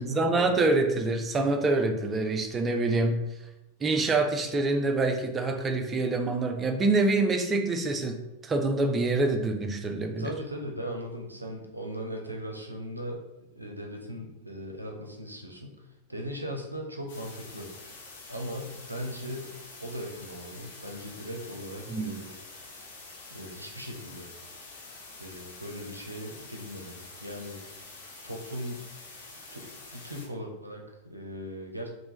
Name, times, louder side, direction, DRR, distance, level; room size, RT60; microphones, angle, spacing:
voice 1, 0.0-3.2 3.8-10.3 21.9-22.1, right 2 dB, 20° right, 5 dB, 0.4 m, -26 dB
voice 2, 10.2-17.7 18.3-19.5 19.8-22.3 23.3-24.3 25.2-27.7 28.2-28.8 29.5-31.9, equal, 85° right, 1 dB, 0.5 m, -38 dB
sound 1, 17.1-30.3, left 3 dB, 55° left, 0.6 m, -47 dB
3.3 x 2.0 x 2.9 m, 0.95 s
figure-of-eight pair, 90°, 0 cm